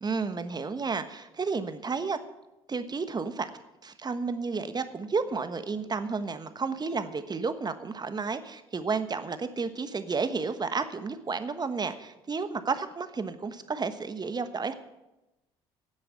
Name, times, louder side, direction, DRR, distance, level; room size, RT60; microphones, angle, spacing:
voice 1, 0.0-2.2 2.7-3.5 3.8-14.7, right 4 dB, 30° right, 11 dB, 1.2 m, -32 dB
11.0 x 7.8 x 9.2 m, 0.98 s
hypercardioid pair, 55°, 13 cm